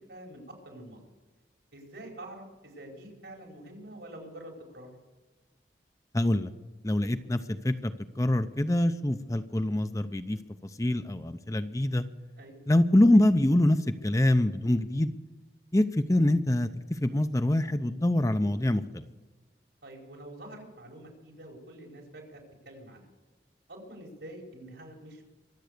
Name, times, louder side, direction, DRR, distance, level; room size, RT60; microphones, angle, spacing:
voice 1, 0.1-1.0 1.7-4.9 12.4-12.6 19.8-22.4 22.6-23.1 23.7-25.2, right 1 dB, 85° right, 0 dB, 4.9 m, -46 dB
voice 2, 6.1-6.5 6.8-10.4 10.8-12.0 12.7-15.1 15.7-19.0, left 1 dB, 20° left, 10 dB, 0.6 m, -25 dB
24.0 x 8.2 x 6.7 m, 1.2 s
head